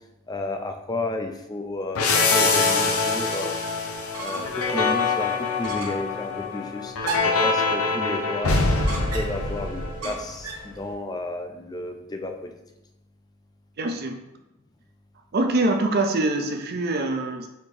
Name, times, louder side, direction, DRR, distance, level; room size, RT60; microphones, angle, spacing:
voice 1, 0.3-3.6 4.2-6.9 7.2-8.5 9.1-12.5, left 2 dB, 15° left, 4 dB, 0.3 m, -32 dB
sound 1, 1.9-10.4, left 3 dB, 80° left, 0.6 m, -24 dB
sound 2, 3.9-4.7 5.0-5.1 5.6-6.1 7.0-7.5 8.9-9.5 10.0-10.7, right 2 dB, 90° right, 0.9 m, -33 dB
voice 2, 13.8-14.2 15.3-17.5, right 2 dB, 45° right, 5 dB, 0.4 m, -24 dB
4.3 x 3.5 x 3.2 m, 0.94 s
head